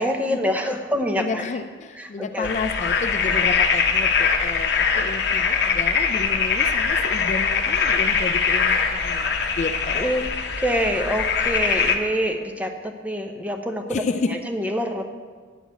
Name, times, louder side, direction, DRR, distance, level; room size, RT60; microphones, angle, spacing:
voice 1, 0.0-1.4 2.0-2.5 9.9-10.2 10.6-14.0 14.3-15.0, equal, 10° right, 4 dB, 0.7 m, -25 dB
voice 2, 1.1-10.2 13.9-14.3, left 4 dB, 40° left, 7 dB, 0.4 m, -31 dB
sound 1, 2.4-12.0, left 5 dB, 60° left, 0.8 m, -22 dB
10.0 x 4.7 x 8.0 m, 1.5 s
head